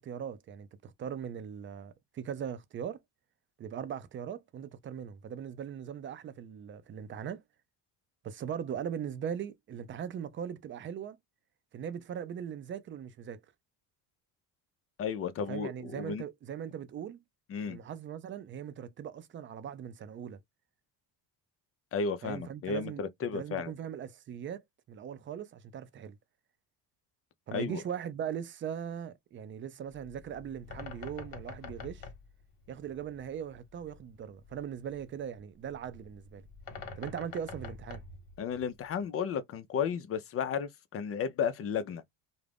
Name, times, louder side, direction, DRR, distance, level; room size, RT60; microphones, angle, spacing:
voice 1, 0.0-3.0 3.6-7.4 8.2-11.2 11.7-13.4 15.5-17.2 17.7-20.4 22.2-23.0 23.3-24.6 24.9-26.2 27.5-32.0 32.7-36.5 37.0-38.0, right 8 dB, 30° right, 0.4 m, -40 dB
voice 2, 15.0-16.2 17.5-17.8 21.9-23.7 27.5-27.8 38.4-42.0, left 6 dB, 35° left, 0.4 m, -33 dB
Bird, 29.9-39.0, left 4 dB, 55° left, 1.0 m, -47 dB
2.4 x 2.0 x 3.3 m
supercardioid pair, 105°, 43 cm